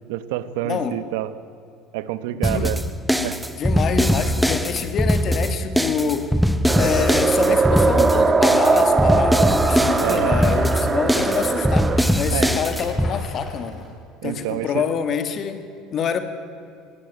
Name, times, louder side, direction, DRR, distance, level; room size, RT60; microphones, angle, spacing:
voice 1, 0.1-1.3 1.9-2.8 3.2-3.4 10.0-10.4 12.3-12.6 14.2-14.8, right 13 dB, 85° right, 14 dB, 1.1 m, -27 dB
voice 2, 0.6-1.0 2.3-2.7 3.5-6.3 6.8-13.8 14.2-15.6 15.9-16.2, left 7 dB, 40° left, 9 dB, 1.9 m, -26 dB
sound 1, 2.4-13.1, equal, ahead, 1.0 m, -21 dB
sound 2, 6.7-12.0, right 4 dB, 20° right, 1.4 m, -20 dB
Rattle, 8.8-13.9, left 2 dB, 25° left, 6.6 m, -41 dB
20.0 x 16.5 x 9.3 m, 2.5 s
supercardioid pair, 110°, 0 cm